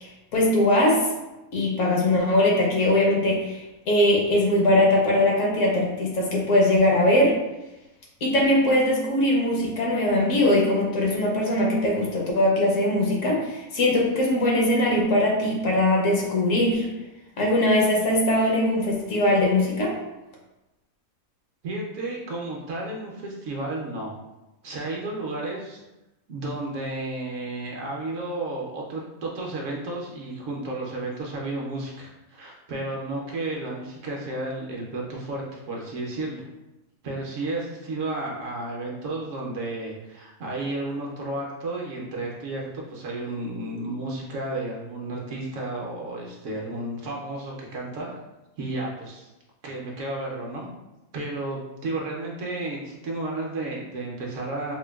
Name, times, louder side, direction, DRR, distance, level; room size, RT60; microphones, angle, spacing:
voice 1, 0.0-1.1 1.5-7.4 8.2-16.9 17.4-20.0, left 1 dB, 70° left, -2 dB, 1.0 m, -21 dB
voice 2, 21.6-24.1 24.6-25.8 26.3-36.4 37.0-48.1 48.6-49.3 49.6-50.7 51.1-54.7, right 2 dB, 65° right, -2 dB, 0.9 m, -32 dB
4.2 x 2.2 x 2.2 m, 1.0 s
omnidirectional pair, 1.5 m